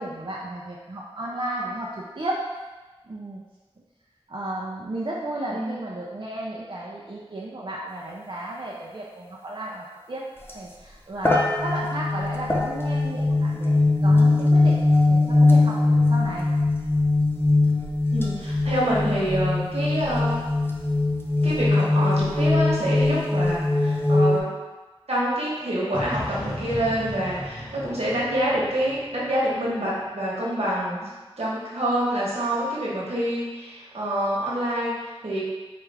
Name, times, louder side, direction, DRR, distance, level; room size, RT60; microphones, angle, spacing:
voice 1, 0.0-2.5 3.1-3.4 4.3-10.2 10.5-14.8 15.1-16.5, right 1 dB, 50° right, -5 dB, 0.5 m, -33 dB
sound 1, 10.5-10.6 11.2-24.4, left 2 dB, 20° left, 0.5 m, -21 dB
voice 2, 18.1-20.4 21.4-24.5 25.1-35.4, right 1 dB, 85° right, -7 dB, 1.1 m, -27 dB
sound 2, 25.9-29.8, equal, 50° left, 1.3 m, -35 dB
4.6 x 2.5 x 3.3 m, 1.2 s
wide cardioid pair, 50°, 10 cm